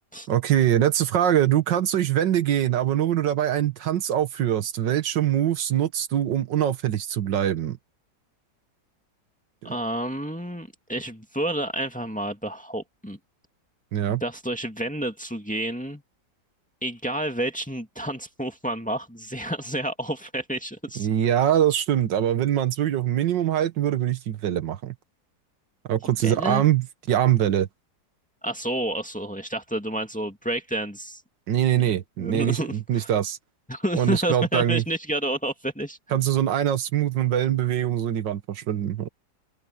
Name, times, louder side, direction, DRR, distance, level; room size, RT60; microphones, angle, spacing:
voice 1, 0.3-7.8 9.6-9.7 13.9-14.2 21.0-25.0 25.9-27.7 31.5-33.4 33.9-34.8 36.1-39.1, right 11 dB, 80° right, 1.8 m, -23 dB
voice 2, 9.6-13.2 14.1-16.0 16.8-21.1 26.0-26.6 28.4-31.2 31.8-33.1 33.7-36.2, right 1 dB, 5° left, 2.0 m, -30 dB
open air
omnidirectional pair, 1.9 m